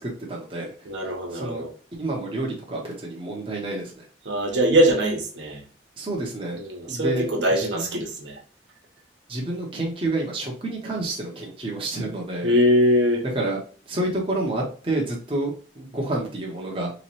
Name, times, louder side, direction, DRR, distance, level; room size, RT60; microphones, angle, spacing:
voice 1, 0.0-0.7 1.3-1.6 1.9-4.1 6.0-6.6 6.9-7.3 7.6-8.0 9.3-12.5 13.3-13.6 13.9-16.9, right 2 dB, 30° right, 0.7 m, -29 dB
voice 2, 0.8-1.7 4.2-5.6 6.5-8.4 12.4-13.2, equal, 70° right, 1.0 m, -22 dB
3.4 x 3.0 x 3.0 m
head